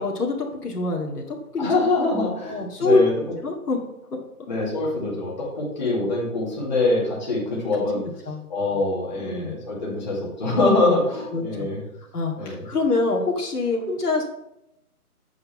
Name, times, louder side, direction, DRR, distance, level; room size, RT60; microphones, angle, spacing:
voice 1, 0.0-1.7 2.4-3.0 3.4-3.8 8.3-8.4 9.2-9.5 11.3-11.7 12.1-14.2, left 3 dB, 85° left, 0 dB, 2.3 m, -25 dB
voice 2, 1.6-3.1 4.5-8.0 8.5-11.8 12.4-12.6, left 2 dB, 30° left, -5 dB, 2.3 m, -24 dB
7.7 x 6.0 x 5.8 m, 0.85 s
hypercardioid pair, 180°, 45 cm